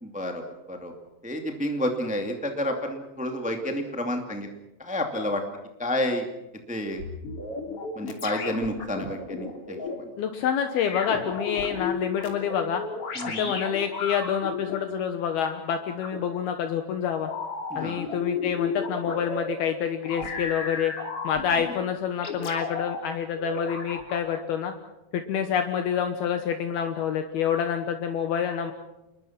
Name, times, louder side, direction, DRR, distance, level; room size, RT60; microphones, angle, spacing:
voice 1, 0.0-0.4 0.7-0.9 1.2-4.5 4.8-5.4 5.8-6.3 6.7-7.0 7.9-9.8 13.1-13.5 17.7-18.0, left 1 dB, 10° right, 4 dB, 0.5 m, -29 dB
sound 1, 7.0-9.9 10.8-14.7 16.0-16.2 17.2-19.5 20.0-21.7 22.2-23.0 23.3-24.3, left 4 dB, 35° left, 3.5 m, -33 dB
voice 2, 10.2-12.8 13.4-17.3 17.8-20.9 21.2-24.7 25.1-28.7, left 8 dB, 70° left, 7 dB, 2.9 m, -27 dB
28.5 x 21.5 x 5.9 m, 0.97 s
omnidirectional pair, 4.9 m